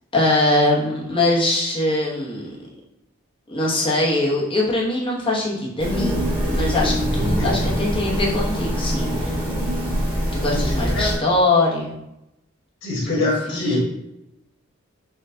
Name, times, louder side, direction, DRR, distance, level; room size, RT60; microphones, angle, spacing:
voice 1, 0.1-2.6 3.5-9.4 10.3-12.0 13.0-13.1 13.5-13.8, left 2 dB, 25° left, -4 dB, 1.0 m, -22 dB
sound 1, 5.8-11.2, equal, 25° right, 1.2 m, -23 dB
voice 2, 10.6-11.2 12.8-13.8, left 2 dB, 85° left, -7 dB, 1.5 m, -24 dB
4.4 x 2.3 x 3.8 m, 0.86 s
head